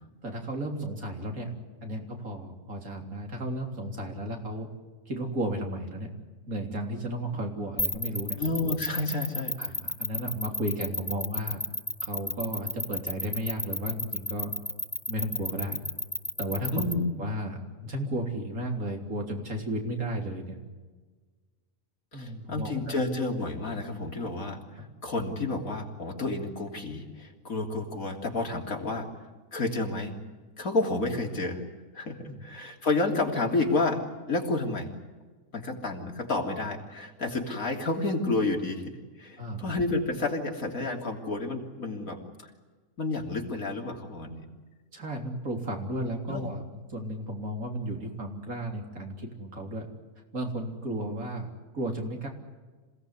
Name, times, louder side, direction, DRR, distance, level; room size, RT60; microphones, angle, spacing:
voice 1, 0.2-1.5 1.8-4.7 5.1-6.1 6.5-8.4 9.6-11.6 12.0-14.5 15.1-15.8 16.4-16.9 17.2-20.6 22.1-22.9 24.8-24.9 32.2-32.4 39.4-39.7 44.9-46.6 46.9-49.9 50.3-52.3, right 1 dB, 85° right, 3 dB, 3.9 m, -34 dB
sound 1, 7.8-16.9, left 1 dB, 10° left, 0.7 m, -31 dB
voice 2, 8.4-9.6 16.7-17.0 22.1-29.1 29.5-30.2 30.6-31.6 31.9-34.0 34.3-34.9 35.5-38.9 39.2-42.5 43.0-44.5 46.3-46.4, left 2 dB, 80° left, 2 dB, 3.6 m, -30 dB
27.0 x 17.5 x 9.8 m, 1.4 s
omnidirectional pair, 1.4 m